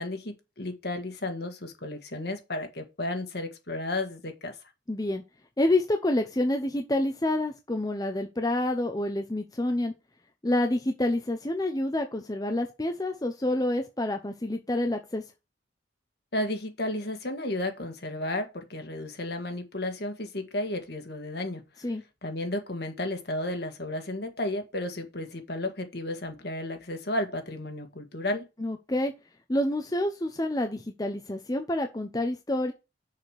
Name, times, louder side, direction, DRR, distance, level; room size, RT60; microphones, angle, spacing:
voice 1, 0.0-4.6 16.3-21.6 22.2-28.5, left 1 dB, 60° left, 1.7 m, -33 dB
voice 2, 4.9-5.2 5.6-9.9 10.4-15.2 21.8-22.0 28.6-29.1 29.5-32.7, left 1 dB, 20° left, 0.7 m, -28 dB
6.6 x 5.1 x 6.5 m
head